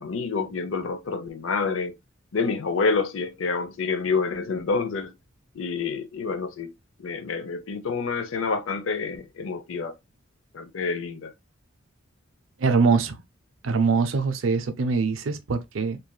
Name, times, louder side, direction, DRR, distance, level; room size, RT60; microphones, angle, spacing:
voice 1, 0.0-1.9 2.3-5.1 5.5-6.7 7.0-9.9 10.5-11.3, left 4 dB, 80° left, 0.5 m, -28 dB
voice 2, 12.6-13.2 13.6-16.0, right 4 dB, 75° right, 0.5 m, -23 dB
3.2 x 2.6 x 2.2 m
head